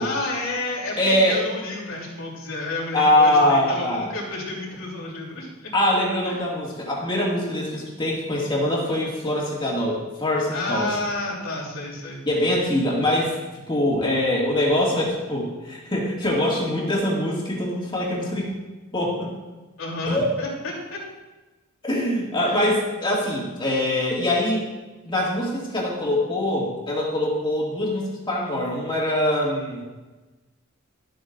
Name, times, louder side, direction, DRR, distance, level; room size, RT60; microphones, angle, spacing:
voice 1, 0.0-5.5 6.2-6.4 10.5-12.2 19.8-21.0 22.4-22.7, left 2 dB, 90° left, -5 dB, 3.2 m, -30 dB
voice 2, 1.0-1.4 2.9-4.1 5.7-10.9 12.2-13.3 13.7-18.5 18.9-19.3 20.1-20.3 21.8-24.6 25.0-29.8, left 1 dB, 25° left, -4 dB, 2.1 m, -23 dB
12.5 x 7.9 x 2.6 m, 1.2 s
head